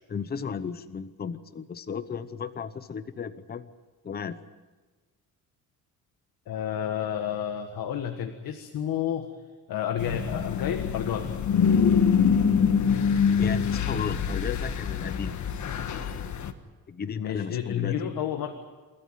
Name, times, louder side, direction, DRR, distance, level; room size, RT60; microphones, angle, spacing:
voice 1, 0.1-3.7 4.0-4.4 13.4-15.4 16.9-18.1, left 6 dB, 25° left, 12 dB, 0.8 m, -34 dB
voice 2, 6.5-9.3 9.7-11.3 17.2-18.6, left 9 dB, 75° left, 5 dB, 1.7 m, -30 dB
sound 1, 10.0-16.5, left 6 dB, 55° left, 1.5 m, -25 dB
29.0 x 13.5 x 9.2 m, 1.3 s
cardioid pair, 135°, 35 cm